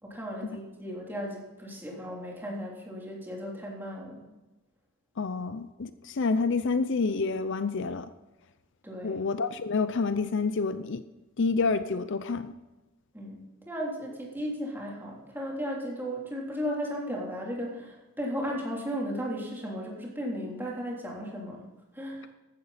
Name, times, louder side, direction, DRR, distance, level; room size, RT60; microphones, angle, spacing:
voice 1, 0.0-4.2 8.8-9.2 13.1-21.6 21.9-22.3, equal, 10° right, -3 dB, 3.4 m, -35 dB
voice 2, 5.2-8.1 9.0-11.0 11.4-12.5, left 4 dB, 60° left, 12 dB, 0.6 m, -28 dB
15.0 x 12.0 x 4.2 m, 1.1 s
head